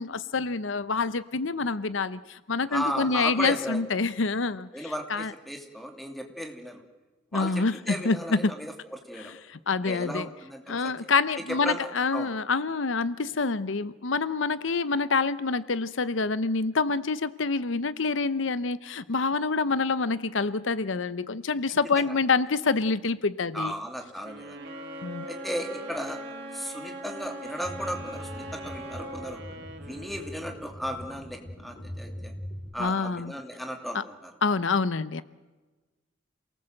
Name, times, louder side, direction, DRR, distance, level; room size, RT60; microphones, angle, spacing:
voice 1, 0.0-4.7 5.1-5.3 7.3-7.8 8.0-8.5 9.5-10.3 10.7-23.7 25.0-25.3 32.8-33.3 33.9-34.0 34.4-35.2, left 4 dB, 75° left, 15 dB, 0.8 m, -27 dB
voice 2, 2.7-3.8 4.7-6.8 7.3-9.3 9.8-10.9 11.4-12.3 22.0-22.2 23.5-24.6 25.3-26.2 26.5-29.4 29.9-32.3 32.7-34.3, equal, ahead, 3 dB, 2.6 m, -35 dB
sound 1, 24.2-30.8, right 2 dB, 60° right, 3.2 m, -44 dB
Wind instrument woodwind instrument, 24.5-29.3, equal, 30° right, 6.4 m, -41 dB
sound 2, 27.6-32.7, equal, 35° left, 4.6 m, -42 dB
28.0 x 19.0 x 7.8 m, 1.2 s
head